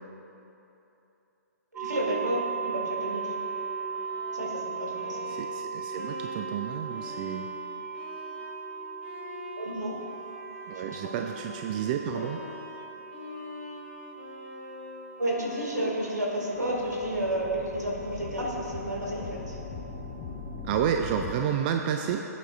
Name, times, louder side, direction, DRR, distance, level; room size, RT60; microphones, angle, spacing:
sound 1, 1.7-21.4, right 5 dB, 15° right, 0.8 m, -39 dB
voice 1, 1.7-3.3 4.3-5.4 9.6-9.9 10.9-11.0 15.2-19.6, right 1 dB, 85° right, -3 dB, 2.2 m, -31 dB
Bowed string instrument, 2.8-18.9, left 3 dB, 45° left, 1.2 m, -47 dB
voice 2, 5.3-7.5 10.7-12.4 20.6-22.3, right 8 dB, 30° right, 4 dB, 0.4 m, -30 dB
sound 2, 16.5-21.3, left 4 dB, 25° left, 0.9 m, -40 dB
16.5 x 8.4 x 2.5 m, 3.0 s
figure-of-eight pair, 125°, 9 cm